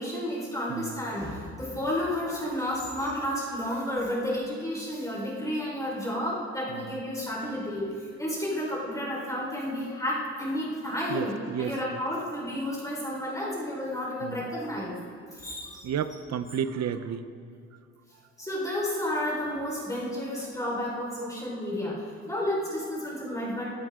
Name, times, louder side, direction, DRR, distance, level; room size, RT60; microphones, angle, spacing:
voice 1, 0.0-15.0 15.3-15.9 18.4-23.6, left 1 dB, 10° left, -5 dB, 4.8 m, -31 dB
voice 2, 11.1-11.7 14.2-14.4 15.8-17.2, right 8 dB, 60° right, 12 dB, 0.9 m, -31 dB
24.0 x 12.5 x 3.8 m, 2.3 s
cardioid pair, 90°, 30 cm